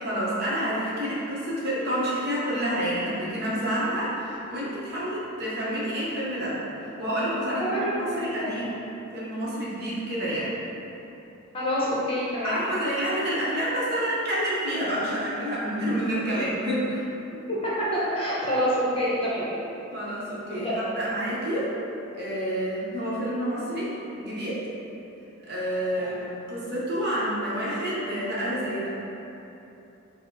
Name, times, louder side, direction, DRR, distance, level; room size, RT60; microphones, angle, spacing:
voice 1, 0.0-8.8 9.1-10.5 12.4-17.0 19.9-21.7 22.1-24.7 25.4-28.9, equal, 50° right, -7 dB, 0.9 m, -29 dB
voice 2, 7.5-8.6 11.5-12.6 17.3-19.5 20.5-20.9 26.0-26.2, equal, 25° left, -7 dB, 0.8 m, -27 dB
4.9 x 2.1 x 4.5 m, 2.9 s
head